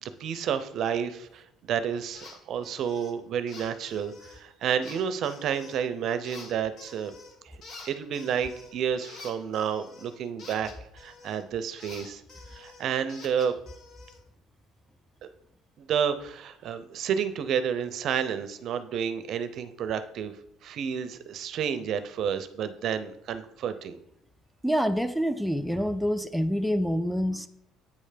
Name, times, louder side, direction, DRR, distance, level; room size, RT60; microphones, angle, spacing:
voice 1, 0.0-7.1 7.8-12.2 12.5-13.6 15.8-20.3 20.6-24.0, right 8 dB, 60° right, 12 dB, 0.5 m, -30 dB
sound 1, 2.1-2.4 2.6-3.1 3.5-4.4 4.8-5.8 6.2-7.3 7.6-11.4 11.8-14.2, left 3 dB, 60° left, 1.6 m, -48 dB
voice 2, 24.6-27.5, equal, ahead, 8 dB, 0.4 m, -26 dB
8.3 x 3.3 x 5.0 m, 0.76 s
cardioid pair, 105°, 0 cm